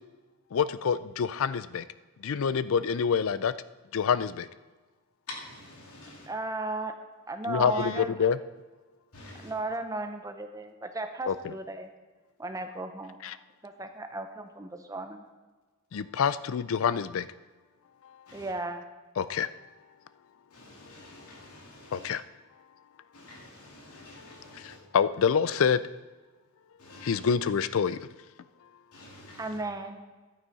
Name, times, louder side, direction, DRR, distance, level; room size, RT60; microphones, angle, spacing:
voice 1, 0.5-1.8 2.2-3.5 3.9-4.5 7.5-8.4 11.3-11.5 13.2-13.4 15.9-17.3 19.2-19.5 21.9-22.2 24.9-25.8 27.0-28.0, left 6 dB, 70° left, 16 dB, 0.4 m, -26 dB
voice 2, 5.3-6.3 9.1-9.5 18.3-18.5 20.5-22.1 23.1-24.8 26.8-27.2 28.9-29.6, left 2 dB, 85° left, -1 dB, 2.3 m, -48 dB
voice 3, 6.3-6.9 7.3-8.1 9.4-11.9 12.4-13.2 13.6-15.2 18.3-18.9 29.4-30.0, right 2 dB, 15° right, 7 dB, 0.6 m, -35 dB
11.0 x 9.2 x 4.1 m, 1.3 s
head